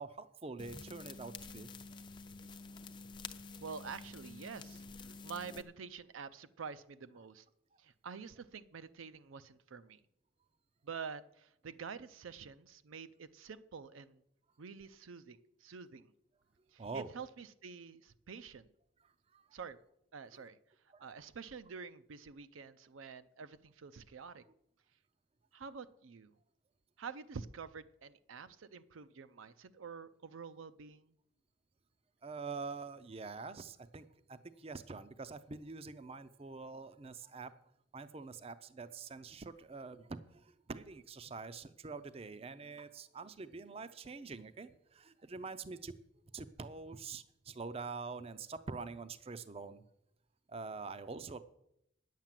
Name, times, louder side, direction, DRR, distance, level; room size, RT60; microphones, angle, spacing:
voice 1, 0.0-1.7 16.8-17.1 19.3-19.5 20.3-20.4 20.9-21.1 32.2-37.5 37.9-45.9 46.3-49.8 50.5-51.4, right 4 dB, 30° right, 13 dB, 0.5 m, -45 dB
sound 1, 0.6-5.6, left 4 dB, 25° left, 0.5 m, -49 dB
voice 2, 3.6-7.4 7.8-10.0 10.8-14.2 14.6-16.1 16.7-18.7 19.5-19.8 20.1-20.6 21.0-24.4 25.5-26.3 27.0-31.1, right 5 dB, 75° right, 12 dB, 0.5 m, -48 dB
9.9 x 7.5 x 7.4 m, 0.78 s
head